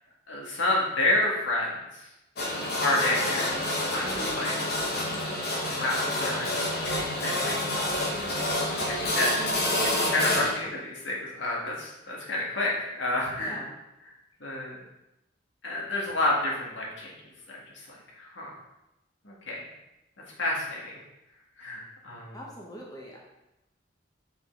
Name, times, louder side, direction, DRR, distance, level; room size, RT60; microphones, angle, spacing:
voice 1, 0.3-1.8 2.8-3.5 3.8-4.5 5.6-7.6 8.9-9.3 9.8-13.6 14.4-14.8 15.6-17.1 17.5-17.6 17.9-18.5 19.2-19.6 20.4-21.0 21.6-22.4, left 2 dB, 85° left, -3 dB, 1.9 m, -29 dB
sound 1, 2.4-10.5, left 1 dB, 55° left, 1.2 m, -28 dB
voice 2, 4.0-4.4 13.4-13.7 22.3-23.2, equal, 20° left, -3 dB, 1.0 m, -41 dB
5.9 x 5.3 x 3.8 m, 0.91 s
head